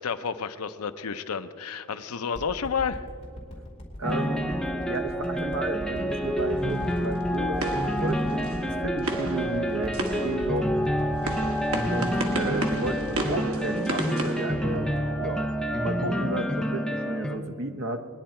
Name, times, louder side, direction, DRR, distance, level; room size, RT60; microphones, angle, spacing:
voice 1, 0.0-3.1, left 6 dB, 85° left, 10 dB, 0.6 m, -31 dB
sound 1, 2.3-14.7 15.1-15.2, equal, 30° left, 2.5 m, -40 dB
sound 2, 4.0-17.4, equal, 5° left, 0.6 m, -28 dB
voice 2, 4.0-10.7 11.9-14.9 15.2-15.4 15.8-18.1, right 2 dB, 55° right, 7 dB, 0.9 m, -33 dB
sound 3, 6.2-15.3, right 2 dB, 75° right, 1.5 m, -35 dB
20.5 x 10.0 x 4.4 m, 2.4 s
head